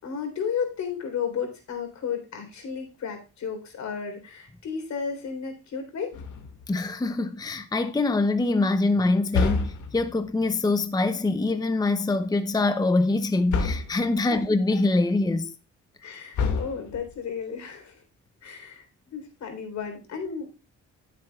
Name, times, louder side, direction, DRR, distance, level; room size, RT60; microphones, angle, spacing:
voice 1, 0.0-6.1 14.3-14.4 16.0-18.0 18.4-18.9 19.1-20.5, left 6 dB, 65° left, 3.8 m, -33 dB
sound 1, 6.1-6.8 9.3-10.2 13.5-14.1 16.3-17.2, left 4 dB, 80° left, 2.2 m, -28 dB
voice 2, 6.7-15.5, left 2 dB, 15° left, 0.7 m, -24 dB
15.5 x 7.6 x 2.4 m
cardioid pair, 90°, 30 cm